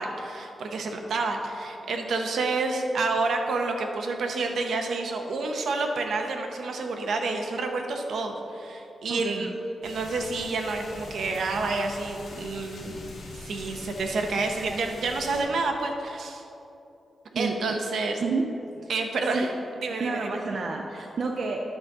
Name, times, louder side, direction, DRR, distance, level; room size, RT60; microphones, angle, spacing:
voice 1, 0.0-9.5 9.8-13.0 13.3-16.4 17.3-18.2 18.9-19.5 19.8-20.3, right 3 dB, 70° right, 4 dB, 0.8 m, -29 dB
voice 2, 9.1-9.5 14.6-14.7 17.3-17.5 18.2-18.5 18.8-18.9 19.3-19.5 20.0-21.6, right 4 dB, 50° right, 1 dB, 0.5 m, -29 dB
sound 1, 9.8-15.4, left 2 dB, 75° left, 1.8 m, -43 dB
9.7 x 4.0 x 6.6 m, 2.9 s
wide cardioid pair, 180°, 0 cm